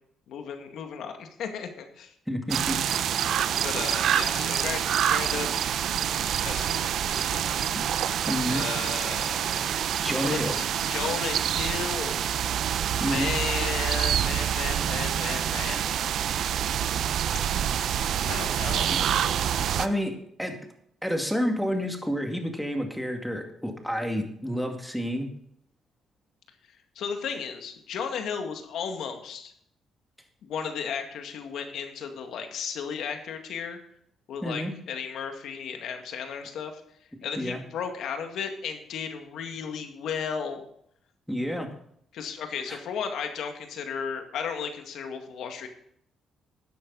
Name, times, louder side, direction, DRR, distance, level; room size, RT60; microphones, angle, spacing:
voice 1, 0.3-2.1 3.6-5.5 6.4-7.6 8.5-9.7 10.1-12.2 13.0-15.8 18.3-18.9 27.0-29.5 30.4-33.8 34.3-36.8 37.2-40.7 42.1-45.7, left 6 dB, 75° left, 5 dB, 2.0 m, -34 dB
voice 2, 2.3-2.8 7.7-7.9 8.3-8.7 9.6-9.7 10.0-10.6 13.0-13.3 18.9-19.0 19.4-20.6 21.0-25.3 34.4-34.7 37.4-37.6 41.3-41.7 42.7-42.8, equal, ahead, 3 dB, 2.3 m, -30 dB
sound 1, 2.5-19.9, right 9 dB, 70° right, 0.6 m, -27 dB
13.5 x 9.7 x 4.1 m, 0.69 s
cardioid pair, 90°, 0 cm